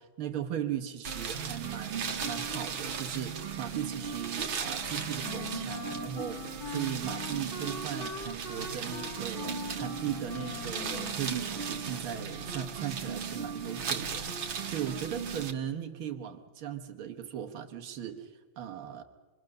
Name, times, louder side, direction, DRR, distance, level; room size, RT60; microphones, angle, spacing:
voice 1, 0.0-19.0, right 10 dB, 90° right, 5 dB, 2.1 m, -38 dB
sound 1, 1.0-15.5, right 6 dB, 70° right, 2.3 m, -38 dB
sound 2, 1.1-15.5, right 6 dB, 55° right, 0.6 m, -40 dB
Wind instrument woodwind instrument, 4.8-12.2, left 5 dB, 60° left, 2.1 m, -43 dB
27.0 x 23.0 x 6.6 m, 1.4 s
omnidirectional pair, 2.3 m